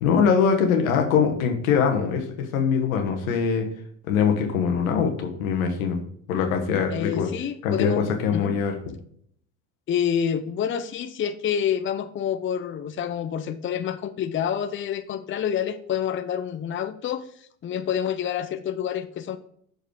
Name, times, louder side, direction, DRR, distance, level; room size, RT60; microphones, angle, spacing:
voice 1, 0.0-3.7 4.1-6.0 6.3-7.3 7.6-8.8, left 6 dB, 85° left, 4 dB, 1.2 m, -22 dB
voice 2, 6.9-8.1 8.3-8.6 9.9-17.3 17.6-19.4, left 9 dB, 30° left, 11 dB, 0.6 m, -28 dB
6.5 x 5.0 x 4.6 m, 0.64 s
hypercardioid pair, 75°, 40 cm